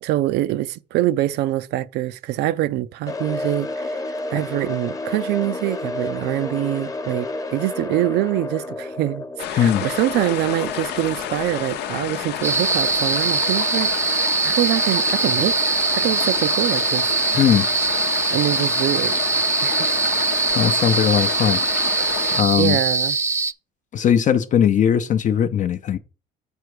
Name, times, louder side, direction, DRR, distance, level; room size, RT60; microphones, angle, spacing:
voice 1, 0.0-4.0 4.3-13.9 14.4-15.6 15.9-17.4 18.3-19.2 19.6-19.9 22.6-23.2, right 15 dB, 85° right, 0.5 m, -24 dB
sound 1, 3.1-13.1, left 2 dB, 20° left, 0.9 m, -31 dB
sound 2, 9.4-22.4, left 11 dB, 80° left, 0.8 m, -29 dB
sound 3, 12.4-23.5, right 4 dB, 15° right, 0.3 m, -22 dB
voice 2, 20.6-21.6 22.3-22.8 23.9-26.0, left 9 dB, 45° left, 0.6 m, -19 dB
6.8 x 4.8 x 4.8 m
cardioid pair, 110°, 17 cm